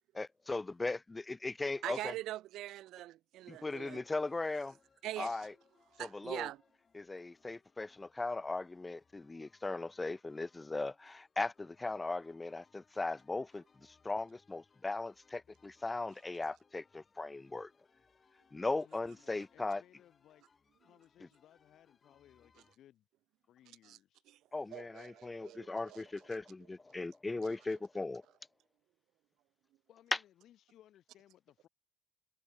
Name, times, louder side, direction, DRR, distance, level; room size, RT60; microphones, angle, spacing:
voice 1, 0.2-2.1 3.5-4.8 5.2-5.5 6.0-6.5 6.9-17.7 18.5-19.8 24.5-28.2, left 3 dB, 20° left, 0.4 m, -38 dB
voice 2, 1.8-4.0 5.0-5.5 6.0-6.6 23.8-24.0 24.3-24.4 24.7-26.0, right 14 dB, 85° right, 0.4 m, -43 dB
sound 1, 3.5-22.8, left 5 dB, 40° left, 3.0 m, -71 dB
voice 3, 18.8-20.4 20.8-23.1 23.5-24.2 29.9-31.7, left 12 dB, 75° left, 4.3 m, -63 dB
cardioid pair, 75°, 0 cm